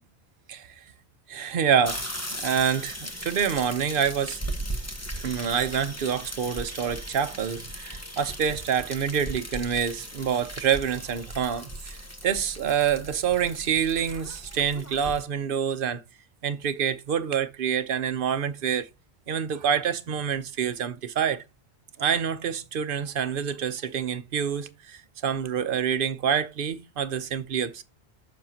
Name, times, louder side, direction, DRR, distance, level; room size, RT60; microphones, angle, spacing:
voice 1, 1.3-2.1 2.4-4.4 5.2-16.0 16.4-18.9 19.3-21.4 22.0-27.8, right 8 dB, 55° right, 0.9 m, -27 dB
sound 1, 1.8-15.2, equal, 15° left, 1.1 m, -37 dB
10.5 x 6.6 x 2.8 m
omnidirectional pair, 1.1 m